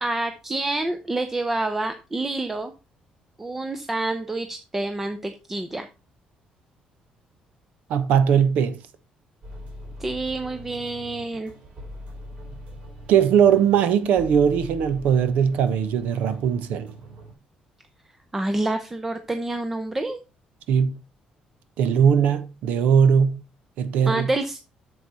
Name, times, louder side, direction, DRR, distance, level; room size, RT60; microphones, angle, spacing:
voice 1, 0.0-2.7 3.4-5.9 10.0-11.5 18.3-20.2 24.0-24.6, right 2 dB, 10° right, 0.6 m, -28 dB
voice 2, 7.9-8.8 13.1-16.9 20.7-21.0 21.8-23.4 23.8-24.3, right 7 dB, 80° right, 1.1 m, -20 dB
sound 1, 9.4-17.3, equal, 50° right, 4.1 m, -42 dB
8.2 x 6.8 x 4.1 m
cardioid pair, 175°, 3 cm